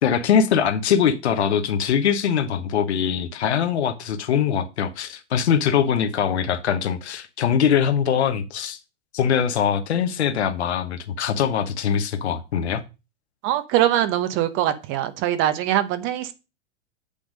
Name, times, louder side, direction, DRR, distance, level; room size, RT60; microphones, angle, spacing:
voice 1, 0.0-8.8 9.1-12.8, left 8 dB, 65° left, 1.1 m, -22 dB
voice 2, 13.4-16.3, right 12 dB, 35° right, 1.0 m, -22 dB
8.6 x 3.5 x 6.4 m
figure-of-eight pair, 105°, 35 cm